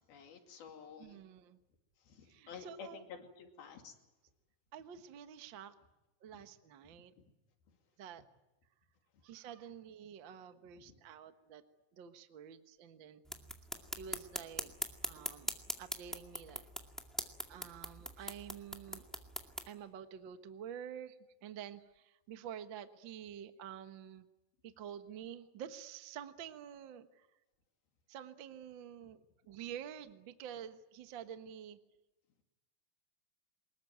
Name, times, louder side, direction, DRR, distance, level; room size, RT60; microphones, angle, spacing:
voice 1, 0.1-1.2 2.1-3.1 3.4-3.9 6.3-6.4 10.9-11.0, left 6 dB, 75° left, 4 dB, 4.3 m, -51 dB
voice 2, 1.0-1.6 2.3-3.1 4.7-5.7 6.2-7.1 8.0-8.2 9.2-11.6 11.9-13.2 14.0-14.7 15.0-16.6 17.5-19.0 19.7-24.3 24.6-27.3 28.1-29.2 29.5-31.8, right 9 dB, 75° right, 9 dB, 1.1 m, -49 dB
sound 1, 13.3-19.7, equal, ahead, 0.4 m, -42 dB
25.0 x 21.5 x 9.3 m, 1.0 s
omnidirectional pair, 4.4 m